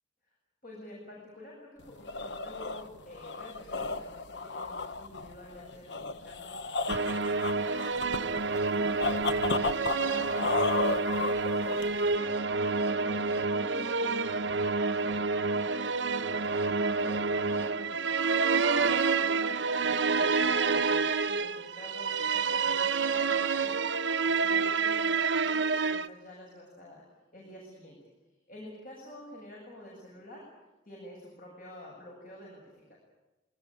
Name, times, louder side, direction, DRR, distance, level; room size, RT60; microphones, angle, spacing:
voice 1, 0.6-8.9 9.3-27.0 27.3-28.0 28.5-30.4 30.8-33.0, left 1 dB, 50° left, -2 dB, 7.9 m, -49 dB
sound 1, 1.8-12.2, left 3 dB, 70° left, 1.1 m, -34 dB
sound 2, 6.9-26.1, right 4 dB, 85° right, 0.9 m, -28 dB
24.0 x 20.0 x 9.3 m, 1.1 s
head